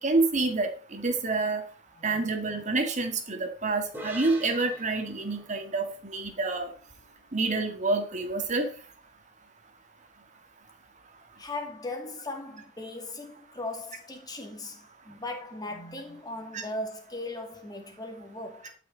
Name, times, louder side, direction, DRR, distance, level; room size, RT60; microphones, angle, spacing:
voice 1, 0.0-1.6 2.0-6.7 7.3-8.7 16.5-16.6, right 3 dB, 40° right, 1.8 m, -28 dB
voice 2, 2.0-2.3 11.4-18.7, left 2 dB, 20° left, 2.2 m, -38 dB
sound 1, 3.9-7.4, right 1 dB, 10° right, 2.6 m, -45 dB
12.0 x 6.0 x 3.9 m
head